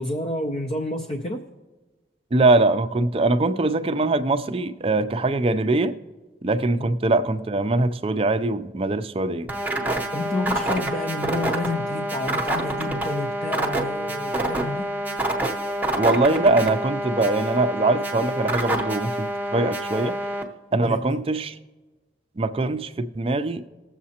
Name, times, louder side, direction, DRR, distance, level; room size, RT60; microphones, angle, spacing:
voice 1, 0.0-1.4 6.8-6.9 10.1-14.9 20.7-21.2, left 2 dB, 35° left, 0.5 m, -29 dB
voice 2, 2.3-5.9 6.4-9.5 15.9-20.2 20.7-21.6 22.4-23.6, right 2 dB, 30° right, 0.4 m, -22 dB
sound 1, 9.5-20.4, right 1 dB, 10° right, 0.8 m, -27 dB
20.0 x 7.3 x 2.9 m
head